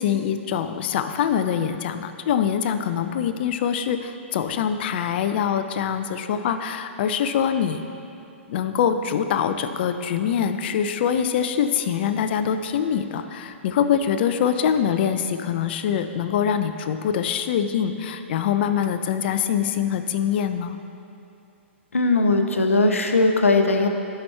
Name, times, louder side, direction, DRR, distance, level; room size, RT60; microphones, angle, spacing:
voice 1, 0.0-7.8 8.5-20.8, left 8 dB, 50° left, 9 dB, 0.5 m, -24 dB
voice 2, 21.9-23.9, left 3 dB, 90° left, 5 dB, 0.8 m, -19 dB
13.0 x 5.8 x 3.3 m, 2.7 s
hypercardioid pair, 115°, 7 cm